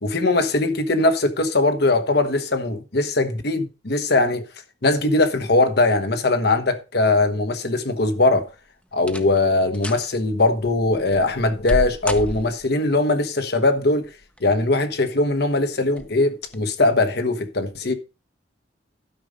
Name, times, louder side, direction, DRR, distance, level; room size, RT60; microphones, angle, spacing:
voice 1, 0.0-4.4 4.8-8.5 8.9-14.1 14.4-17.9, left 2 dB, 60° left, 1.3 m, -20 dB
sound 1, 8.0-8.5 9.0-9.4 9.7-10.1 10.6-12.8 14.0-14.6 15.1-15.2 15.9-16.1 16.5-16.6, equal, 5° left, 0.8 m, -31 dB
12.0 x 5.4 x 5.0 m
head